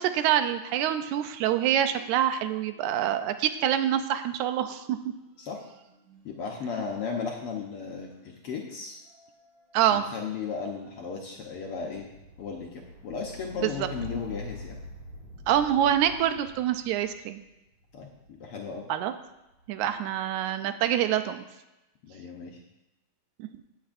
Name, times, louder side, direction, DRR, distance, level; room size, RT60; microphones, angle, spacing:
voice 1, 0.0-5.0 9.7-10.0 13.6-13.9 15.5-17.4 18.9-19.1 19.7-21.4 23.4-23.5, right 10 dB, 80° right, 9 dB, 1.9 m, -26 dB
sound 1, 1.9-3.2 3.5-18.5 19.3-19.9, left 1 dB, 45° right, 4.5 m, -48 dB
voice 2, 6.2-9.0 9.9-12.1 12.4-14.8 17.9-18.1 18.4-18.9 22.1-22.6, left 5 dB, 65° left, 0 dB, 1.5 m, -35 dB
16.0 x 8.3 x 2.6 m, 0.97 s
omnidirectional pair, 3.4 m